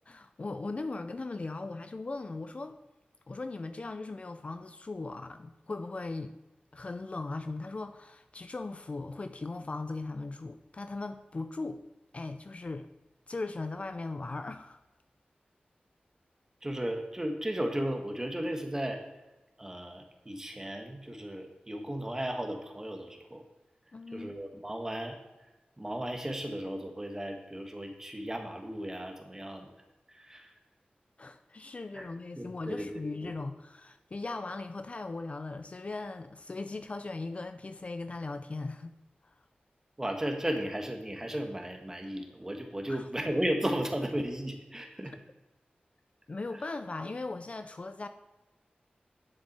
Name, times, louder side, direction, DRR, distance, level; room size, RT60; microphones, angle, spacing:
voice 1, 0.1-2.8 3.3-6.3 6.7-11.8 12.1-12.9 13.3-14.8 23.9-24.4 31.2-38.9 39.2-39.3 42.9-43.1 45.0-45.2 46.3-48.1, left 3 dB, 40° left, 9 dB, 0.4 m, -38 dB
voice 2, 16.6-19.0 19.6-23.4 24.1-25.1 25.8-29.7 30.1-30.5 31.9-32.1 32.4-33.4 40.0-45.1, right 1 dB, 15° right, 4 dB, 1.3 m, -35 dB
10.0 x 7.3 x 4.2 m, 1.1 s
wide cardioid pair, 100°, 3 cm